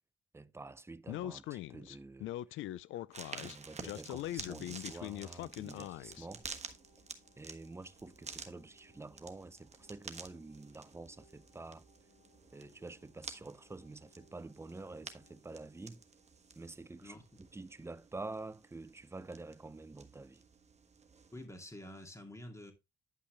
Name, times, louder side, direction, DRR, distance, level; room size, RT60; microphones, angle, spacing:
voice 1, 0.3-2.6 3.4-6.5 7.4-11.8 12.5-16.0 16.6-20.4, right 3 dB, 15° right, 0.6 m, -48 dB
Speech, 1.1-6.3, left 14 dB, 80° left, 0.4 m, -42 dB
sound 1, 2.7-17.4, left 3 dB, 60° left, 4.0 m, -70 dB
sound 2, 3.1-21.5, right 5 dB, 35° right, 1.3 m, -51 dB
voice 2, 21.3-22.7, left 1 dB, 15° left, 2.4 m, -48 dB
10.0 x 5.5 x 3.2 m
cardioid pair, 90°, 20 cm